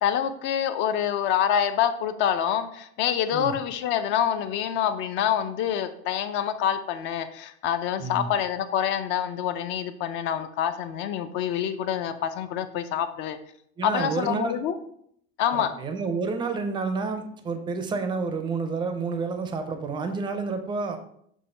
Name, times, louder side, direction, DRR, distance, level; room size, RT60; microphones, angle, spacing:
voice 1, 0.0-13.4 13.8-14.8 15.4-15.7, left 9 dB, 35° left, 10 dB, 0.4 m, -26 dB
voice 2, 8.0-8.3 13.8-14.6 15.5-21.0, right 4 dB, 15° right, 8 dB, 0.5 m, -29 dB
6.2 x 3.0 x 5.4 m, 0.68 s
supercardioid pair, 160°, 32 cm